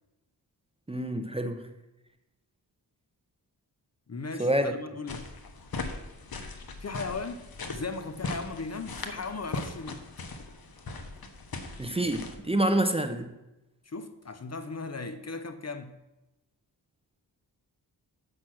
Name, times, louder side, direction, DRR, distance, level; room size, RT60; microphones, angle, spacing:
voice 1, 0.9-1.6 4.4-4.8 11.8-13.3, right 1 dB, 15° right, 8 dB, 0.6 m, -27 dB
voice 2, 4.1-5.3 6.8-10.1 13.9-16.0, left 3 dB, 40° left, 9 dB, 0.6 m, -37 dB
sound 1, 5.1-12.4, left 3 dB, 60° left, 1.0 m, -39 dB
7.7 x 5.7 x 6.1 m, 0.97 s
wide cardioid pair, 90°, 41 cm